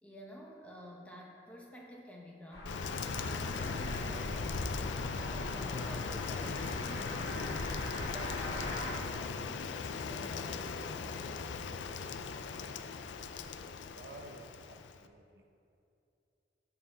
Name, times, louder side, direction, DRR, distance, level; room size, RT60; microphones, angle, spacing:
voice 1, 0.0-4.5 5.3-11.5, equal, 10° left, -2 dB, 0.9 m, -50 dB
sound 1, 2.5-8.9, left 1 dB, 75° left, 1.4 m, -42 dB
Rain, 2.7-15.1, left 5 dB, 90° left, 0.4 m, -38 dB
voice 2, 13.9-15.4, right 2 dB, 60° right, 5 dB, 0.6 m, -52 dB
13.5 x 4.6 x 3.8 m, 2.7 s
head